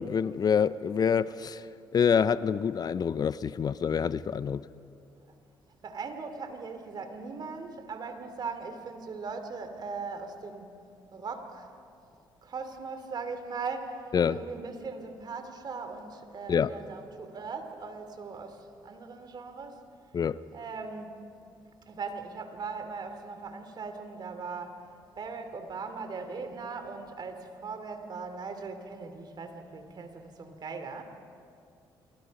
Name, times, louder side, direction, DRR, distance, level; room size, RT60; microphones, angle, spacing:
voice 1, 0.0-1.6 1.9-4.6 14.1-14.4 16.5-16.7 20.1-20.4, left 7 dB, 45° left, 0.6 m, -26 dB
voice 2, 5.8-10.7 11.1-11.7 12.4-19.8 20.5-21.1 21.9-24.8 25.2-31.0, right 4 dB, 50° right, 2.7 m, -39 dB
27.0 x 23.5 x 5.4 m
cardioid pair, 75°, 9 cm